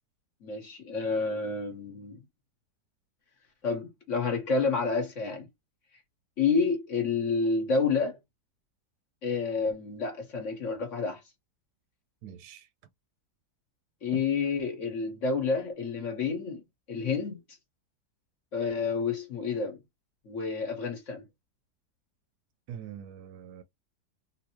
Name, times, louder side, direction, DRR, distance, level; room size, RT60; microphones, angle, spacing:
voice 1, 0.4-2.2 3.6-5.5 6.4-8.2 9.2-11.2 14.0-17.4 18.5-19.8 20.2-21.2, left 4 dB, 50° left, 1.1 m, -29 dB
voice 2, 12.2-12.7 14.1-14.2 22.7-23.6, right 9 dB, 75° right, 1.1 m, -43 dB
3.8 x 2.5 x 2.9 m
omnidirectional pair, 1.8 m